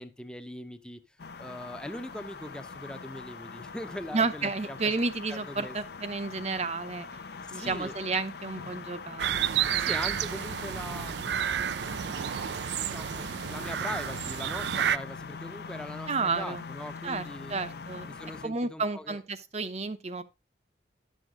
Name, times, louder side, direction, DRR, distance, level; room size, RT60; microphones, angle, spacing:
voice 1, 0.0-5.0 5.3-5.8 7.5-8.0 9.7-11.3 12.8-19.2, left 1 dB, 5° left, 0.7 m, -41 dB
sound 1, 1.2-18.5, left 5 dB, 60° left, 0.6 m, -43 dB
voice 2, 4.1-7.1 7.5-9.9 10.4-10.5 16.1-16.6 17.0-17.2 17.5-18.1 18.4-20.2, right 4 dB, 35° right, 0.8 m, -31 dB
sound 2, 9.2-15.0, right 9 dB, 65° right, 0.4 m, -30 dB
11.0 x 6.4 x 3.7 m
head